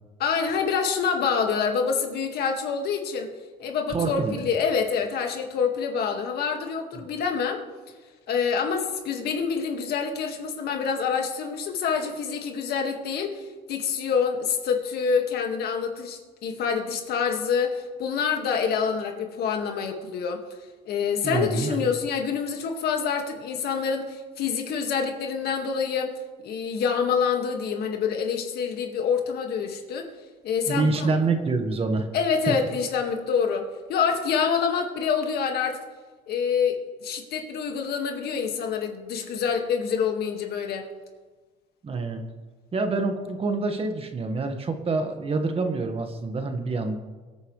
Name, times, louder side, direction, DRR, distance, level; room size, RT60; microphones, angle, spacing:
voice 1, 0.2-3.3 3.6-7.6 8.3-20.4 20.9-30.1 30.4-31.1 32.1-35.8 36.3-40.9, left 6 dB, 70° left, 4 dB, 2.0 m, -26 dB
voice 2, 3.9-4.4 21.2-21.9 30.7-32.1 32.5-32.6 41.8-42.2 42.7-47.0, right 3 dB, 35° right, 5 dB, 1.6 m, -26 dB
23.5 x 9.2 x 3.3 m, 1.3 s
cardioid pair, 110°, 17 cm